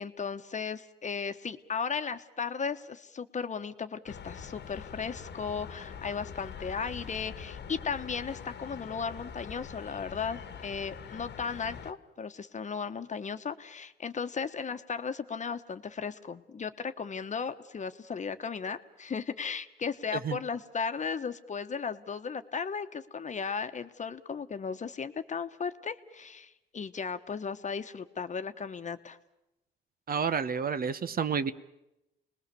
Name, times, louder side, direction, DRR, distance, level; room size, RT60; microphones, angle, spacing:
voice 1, 0.0-29.2, left 6 dB, 40° left, 9 dB, 1.2 m, -36 dB
sound 1, 4.1-11.9, left 7 dB, 60° left, 1.4 m, -44 dB
voice 2, 30.1-31.5, right 6 dB, 45° right, 13 dB, 1.0 m, -30 dB
28.5 x 20.5 x 7.0 m, 0.92 s
cardioid pair, 90°, 20 cm